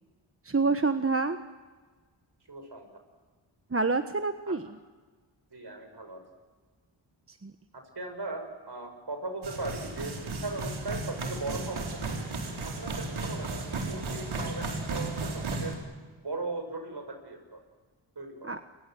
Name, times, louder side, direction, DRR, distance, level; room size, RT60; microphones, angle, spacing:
voice 1, 0.4-1.4 3.7-4.7 7.3-7.5 18.4-18.6, right 4 dB, 30° right, 9 dB, 1.3 m, -27 dB
voice 2, 2.5-2.9 4.5-4.6 5.5-6.2 7.7-12.1 12.6-15.8 16.2-17.6 18.1-18.6, right 2 dB, 55° right, 6 dB, 6.5 m, -38 dB
sound 1, 9.4-15.8, right 3 dB, 85° right, 4.2 m, -34 dB
29.0 x 23.5 x 7.8 m, 1.4 s
cardioid pair, 45°, 47 cm